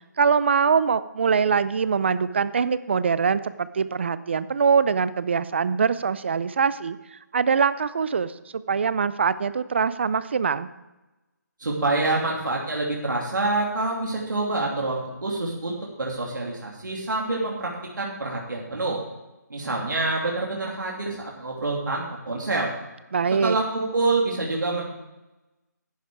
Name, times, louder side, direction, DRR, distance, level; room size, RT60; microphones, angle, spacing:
voice 1, 0.2-10.7 23.1-23.6, right 6 dB, 35° right, 15 dB, 0.5 m, -23 dB
voice 2, 11.6-19.0 19.5-22.7 23.4-24.8, right 2 dB, 80° right, -2 dB, 2.8 m, -27 dB
10.5 x 10.5 x 4.7 m, 1.0 s
hypercardioid pair, 170°, 10 cm